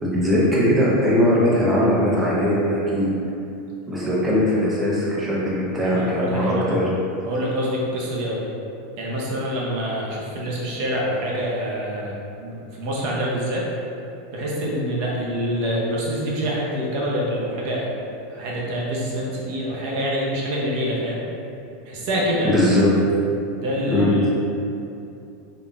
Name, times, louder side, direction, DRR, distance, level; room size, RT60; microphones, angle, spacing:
voice 1, 0.0-3.1 3.9-6.8 22.4-22.9 23.9-24.1, left 1 dB, 10° right, -7 dB, 0.7 m, -20 dB
voice 2, 5.8-6.8 7.2-8.4 9.0-13.7 14.3-17.9 18.3-21.2 21.9-22.6 23.6-24.3, equal, 40° right, -4 dB, 0.7 m, -26 dB
3.8 x 2.5 x 3.4 m, 2.7 s
supercardioid pair, 175°, 0 cm